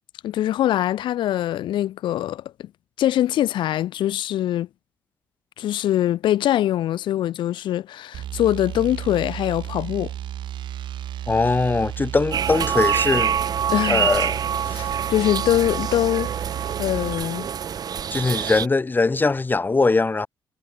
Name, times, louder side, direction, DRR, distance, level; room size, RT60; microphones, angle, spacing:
voice 1, 0.2-2.7 3.0-4.7 5.6-10.1 13.7-14.1 14.7-16.3 16.8-17.5, left 12 dB, 80° left, 2.1 m, -23 dB
sound 1, 8.1-17.2, right 11 dB, 75° right, 2.6 m, -33 dB
voice 2, 11.3-13.4 13.9-14.4 14.7-14.8 18.1-20.3, left 3 dB, 25° left, 2.6 m, -21 dB
sound 2, 12.3-18.7, right 8 dB, 50° right, 1.2 m, -26 dB
cardioid pair, 90°, 8 cm